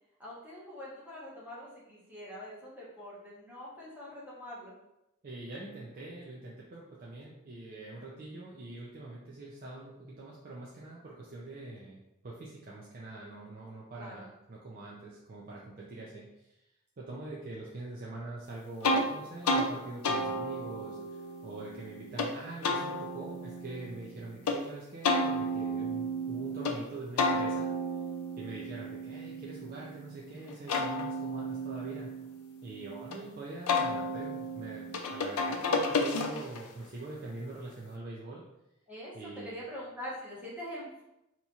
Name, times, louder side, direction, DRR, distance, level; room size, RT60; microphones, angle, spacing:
voice 1, 0.2-4.7 14.0-14.3 38.9-39.1 39.4-41.0, equal, 5° right, -8 dB, 1.0 m, -44 dB
voice 2, 5.2-16.6 17.0-27.7 28.4-32.1 32.6-38.4 39.1-39.6, right 2 dB, 40° right, -4 dB, 0.4 m, -44 dB
sound 1, 18.8-19.1 19.4-19.7 20.0-22.3 22.6-24.6 25.0-26.8 27.2-30.1 30.5-33.2 33.7-36.7, left 1 dB, 85° left, 0.5 m, -32 dB
4.2 x 2.9 x 2.4 m, 0.89 s
head